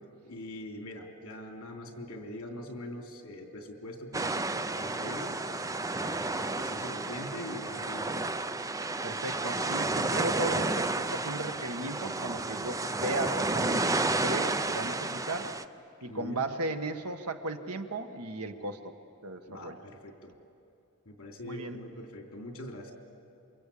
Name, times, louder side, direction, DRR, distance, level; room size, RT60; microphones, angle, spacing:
voice 1, 0.2-5.4 6.0-8.3 16.0-16.4 19.5-20.3 21.0-22.9, left 1 dB, 65° left, 3 dB, 3.2 m, -43 dB
sound 1, 4.1-15.6, right 2 dB, 15° right, 0.6 m, -31 dB
voice 2, 9.0-15.5 16.0-18.9 19.2-19.8 21.4-21.9, right 2 dB, 85° right, 6 dB, 1.6 m, -36 dB
28.0 x 24.0 x 8.6 m, 2.6 s
head